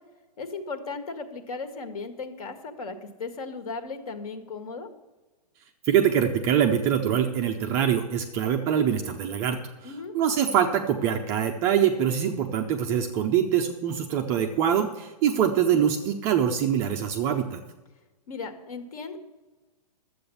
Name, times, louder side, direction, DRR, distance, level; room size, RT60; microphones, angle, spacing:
voice 1, 0.4-4.9 9.8-10.1 18.3-19.2, left 4 dB, 60° left, 8 dB, 1.8 m, -36 dB
voice 2, 5.9-17.6, right 8 dB, 15° right, 4 dB, 0.4 m, -24 dB
12.0 x 7.9 x 6.8 m, 1.2 s
hypercardioid pair, 165°, 21 cm